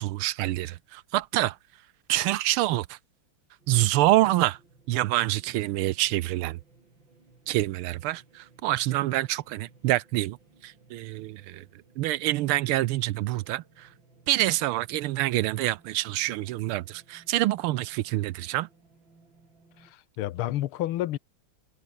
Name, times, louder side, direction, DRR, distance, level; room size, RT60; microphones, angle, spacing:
voice 1, 0.0-1.6 2.1-3.0 3.7-4.6 4.9-6.6 7.5-10.4 10.6-11.6 12.0-13.9 14.3-18.7, right 16 dB, 85° right, 1.5 m, -26 dB
sound 1, 3.6-19.9, right 3 dB, 60° right, 5.7 m, -60 dB
voice 2, 19.8-21.2, left 14 dB, 80° left, 1.7 m, -30 dB
omnidirectional pair, 2.4 m